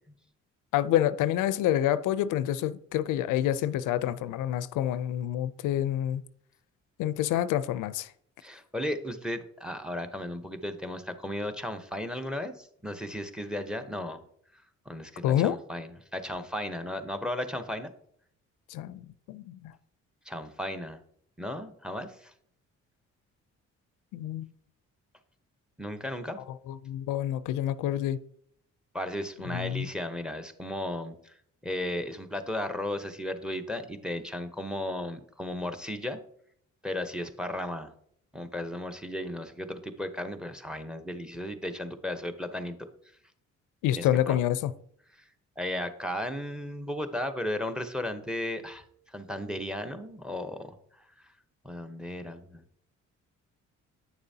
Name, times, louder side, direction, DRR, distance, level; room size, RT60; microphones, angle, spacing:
voice 1, 0.7-6.2 7.0-8.1 15.2-15.6 18.7-19.7 24.1-24.5 26.7-28.2 29.5-29.9 43.8-44.7, left 12 dB, 90° left, 0.5 m, -28 dB
voice 2, 8.4-14.2 14.9-17.9 20.3-21.0 21.4-22.3 25.8-26.4 28.9-31.4 31.6-36.2 36.8-37.9 38.3-42.7 44.0-44.4 45.6-50.7 51.6-52.6, left 1 dB, 5° right, 0.8 m, -35 dB
9.2 x 6.8 x 2.7 m
cardioid pair, 90°, 30 cm